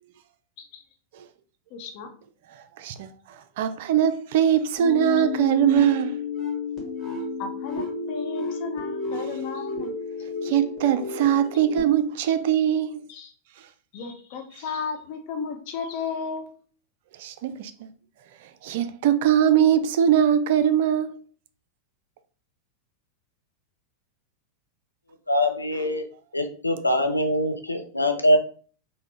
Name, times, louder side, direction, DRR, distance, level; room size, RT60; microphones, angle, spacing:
voice 1, 1.7-2.1 7.4-9.9 13.1-13.3 13.9-16.5, left 5 dB, 45° left, 0.7 m, -34 dB
voice 2, 2.8-3.1 3.6-6.2 10.4-13.0 17.2-17.7 18.6-21.1, right 9 dB, 50° right, 0.3 m, -21 dB
sound 1, 4.8-11.8, left 4 dB, 10° left, 1.5 m, -31 dB
voice 3, 25.3-26.0 26.3-28.4, left 1 dB, 85° left, 0.4 m, -23 dB
3.9 x 2.0 x 3.1 m
figure-of-eight pair, 90°, 0 cm